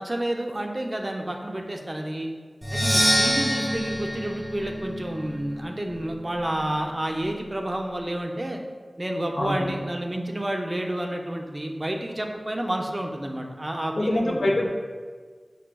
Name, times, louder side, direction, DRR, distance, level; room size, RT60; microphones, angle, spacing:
voice 1, 0.0-2.3 2.7-8.6 9.0-14.6, right 1 dB, 35° right, 2 dB, 0.4 m, -30 dB
Percussion, 2.6-6.4, equal, 5° left, 0.8 m, -26 dB
voice 2, 9.4-9.7 14.0-14.7, left 1 dB, 80° left, 0 dB, 0.5 m, -24 dB
5.7 x 2.7 x 2.2 m, 1.5 s
wide cardioid pair, 65°, 0 cm